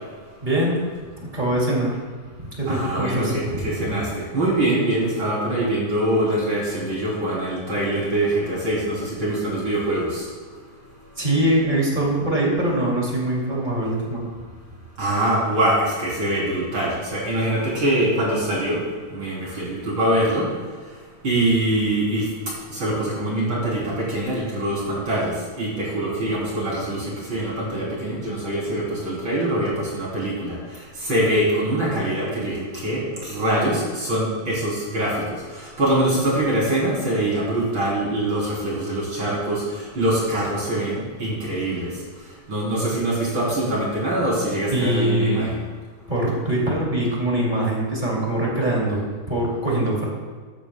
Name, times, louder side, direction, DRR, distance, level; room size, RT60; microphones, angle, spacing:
voice 1, 0.4-0.8 1.2-2.0 2.6-3.4 3.8-3.9 11.2-14.2 44.7-45.5 46.1-50.1, right 1 dB, 15° right, -4 dB, 2.0 m, -23 dB
voice 2, 2.7-10.3 15.0-18.8 19.1-20.5 21.2-22.3 22.7-41.9 42.5-45.6, right 1 dB, 35° right, -6 dB, 3.9 m, -24 dB
14.0 x 12.0 x 2.3 m, 1.5 s
omnidirectional pair, 4.2 m